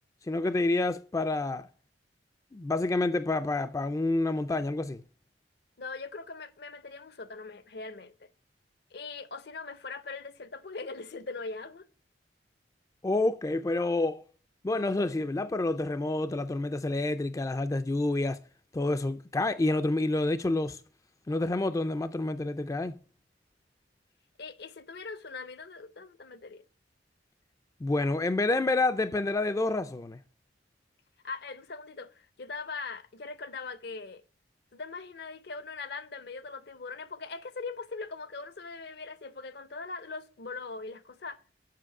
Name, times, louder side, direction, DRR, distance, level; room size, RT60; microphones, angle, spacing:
voice 1, 0.3-1.7 2.5-5.0 13.0-14.2 14.6-18.4 18.7-20.8 21.3-22.9 27.8-30.2, left 2 dB, 20° left, 0.3 m, -28 dB
voice 2, 5.8-8.3 8.9-11.9 24.4-26.6 31.2-34.2 34.7-41.4, left 4 dB, 65° left, 0.7 m, -41 dB
7.6 x 5.7 x 5.9 m
head